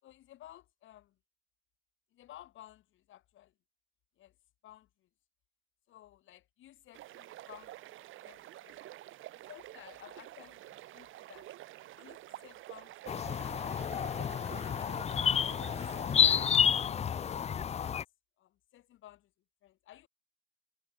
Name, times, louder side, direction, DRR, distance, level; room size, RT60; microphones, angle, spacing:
voice 1, 0.0-1.1 2.1-3.5 4.2-4.3 4.6-4.9 5.9-7.8 8.2-8.8 9.3-11.5 12.0-13.1 14.9-15.1 15.5-15.9 16.2-17.2 17.5-18.0 18.4-19.3 19.6-20.1, left 13 dB, 80° left, 4.3 m, -55 dB
sound 1, 6.9-16.5, right 15 dB, 85° right, 1.4 m, -49 dB
sound 2, 13.1-18.0, left 8 dB, 35° left, 0.4 m, -30 dB
cardioid pair, 90°, 20 cm